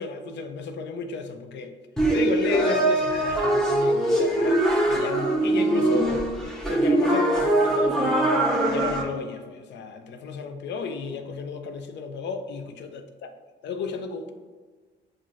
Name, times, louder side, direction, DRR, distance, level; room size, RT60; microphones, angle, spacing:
voice 1, 0.0-1.7 2.1-6.2 6.7-13.3 13.6-14.3, left 5 dB, 65° left, 7 dB, 0.4 m, -33 dB
sound 1, 2.0-9.0, right 1 dB, ahead, 0.8 m, -22 dB
5.6 x 2.6 x 2.4 m, 1.4 s
cardioid pair, 90°, 20 cm